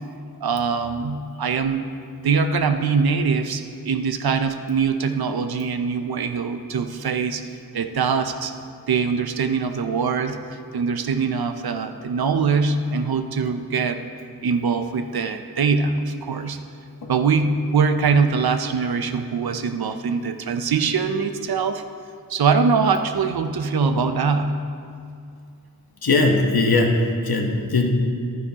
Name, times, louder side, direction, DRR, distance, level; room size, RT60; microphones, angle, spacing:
voice 1, 0.4-1.9 2.2-7.4 7.7-8.5 8.9-10.4 10.7-14.0 14.4-16.6 17.1-21.8 22.3-24.7, right 5 dB, 75° right, 8 dB, 0.6 m, -22 dB
voice 2, 26.0-27.9, left 2 dB, 70° left, 2 dB, 1.1 m, -20 dB
12.0 x 9.5 x 2.9 m, 2.4 s
wide cardioid pair, 80°, 37 cm